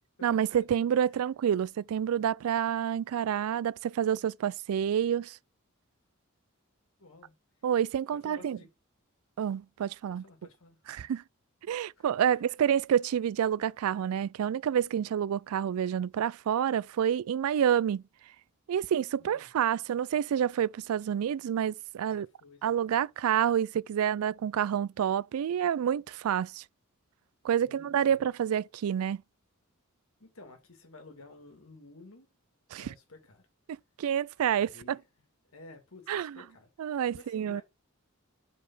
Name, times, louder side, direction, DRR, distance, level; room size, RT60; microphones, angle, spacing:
voice 1, 0.2-5.4 7.6-8.6 9.4-10.2 10.9-11.2 11.6-18.0 18.7-22.3 22.6-26.6 27.4-29.2 32.7-32.9 33.7-35.0 36.1-36.4 36.8-37.6, right 9 dB, 85° right, 0.3 m, -28 dB
voice 2, 7.0-7.3 8.1-8.7 10.1-10.8 12.0-12.1 12.3-12.4 19.2-19.5 22.1-22.9 27.6-28.3 30.2-32.3 32.7-33.4 34.5-35.0 35.5-36.7 37.1-37.6, left 2 dB, 75° left, 2.3 m, -53 dB
4.9 x 4.9 x 5.3 m
head